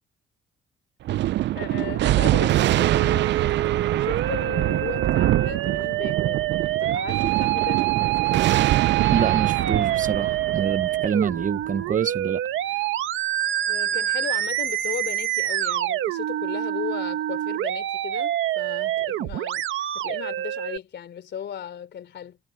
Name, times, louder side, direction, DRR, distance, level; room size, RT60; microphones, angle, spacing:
Thunder, 1.0-11.9, right 14 dB, 65° right, 0.4 m, -24 dB
voice 1, 1.5-3.3 3.9-8.4 13.7-19.7 19.9-22.4, left 9 dB, 60° left, 3.3 m, -36 dB
Musical instrument, 2.8-20.8, right 13 dB, 85° right, 1.8 m, -26 dB
voice 2, 9.1-12.4 12.7-12.9, right 6 dB, 40° right, 0.9 m, -27 dB
cardioid pair, 90°, 20 cm